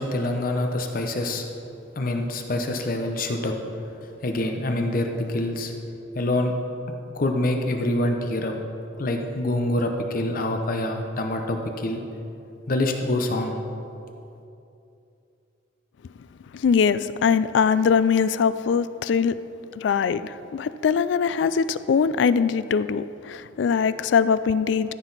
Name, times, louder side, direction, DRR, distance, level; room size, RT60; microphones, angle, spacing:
voice 1, 0.0-1.4 2.0-3.5 4.2-5.7 6.1-6.5 7.1-8.5 9.0-12.0 12.7-13.6, left 1 dB, 50° left, 4 dB, 0.7 m, -25 dB
voice 2, 16.5-19.4 19.8-24.9, left 6 dB, 70° left, 14 dB, 0.3 m, -22 dB
14.0 x 6.2 x 4.0 m, 2.7 s
head